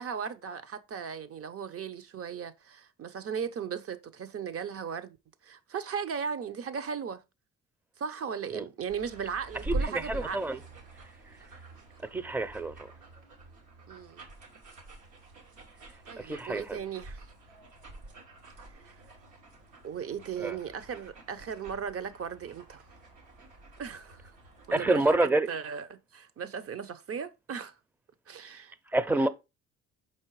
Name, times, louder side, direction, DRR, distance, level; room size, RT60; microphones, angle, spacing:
voice 1, 0.0-5.2 5.4-7.2 8.0-10.4 13.9-14.3 16.1-17.2 18.8-18.9 19.8-22.8 23.8-24.3 24.7-27.7 28.3-28.7 29.2-29.3, right 7 dB, 50° right, 0.8 m, -37 dB
sound 1, 8.9-24.7, right 2 dB, 80° right, 2.3 m, -44 dB
voice 2, 10.1-10.6 12.1-12.7 16.3-16.8 20.4-20.5 24.7-25.5 28.9-29.3, right 2 dB, 5° right, 0.6 m, -27 dB
5.8 x 4.4 x 4.6 m
cardioid pair, 90°, 30 cm